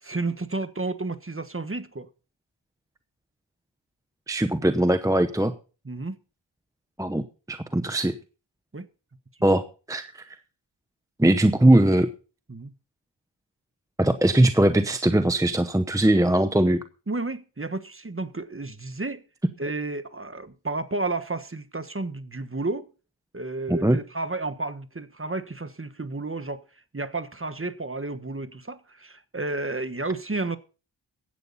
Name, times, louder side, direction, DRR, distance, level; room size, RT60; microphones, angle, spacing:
voice 1, 0.0-2.1 5.8-6.2 8.7-8.9 12.5-12.7 17.1-19.2 19.6-22.9 23.3-26.6 26.9-30.6, right 3 dB, 25° right, 1.4 m, -31 dB
voice 2, 4.3-5.5 7.0-8.2 9.4-10.4 11.2-12.1 14.0-16.8 23.7-24.0, right 1 dB, 5° right, 0.8 m, -21 dB
15.5 x 11.0 x 4.2 m
wide cardioid pair, 85°, 48 cm